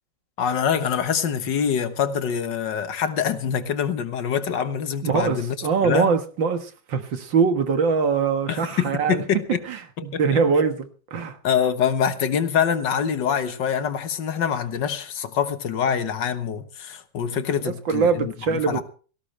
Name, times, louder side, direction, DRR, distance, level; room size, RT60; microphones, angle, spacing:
voice 1, 0.4-5.6 5.8-6.1 8.5-9.6 10.0-10.4 11.4-18.8, left 7 dB, 70° left, 1.9 m, -25 dB
voice 2, 5.0-9.2 9.7-11.4 17.6-18.8, right 5 dB, 80° right, 2.3 m, -23 dB
18.0 x 16.5 x 3.3 m
omnidirectional pair, 2.0 m